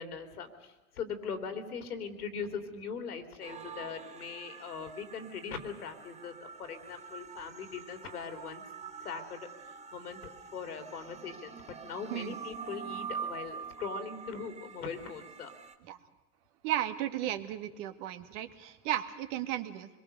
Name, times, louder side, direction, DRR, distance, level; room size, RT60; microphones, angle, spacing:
voice 1, 0.0-8.6 9.0-10.2 10.5-15.5, left 5 dB, 90° left, 8 dB, 3.4 m, -41 dB
sound 1, 3.4-15.8, right 6 dB, 15° right, 1.5 m, -45 dB
voice 2, 16.6-19.9, right 12 dB, 55° right, 9 dB, 1.9 m, -34 dB
25.5 x 22.0 x 6.8 m, 1.1 s
hypercardioid pair, 115°, 44 cm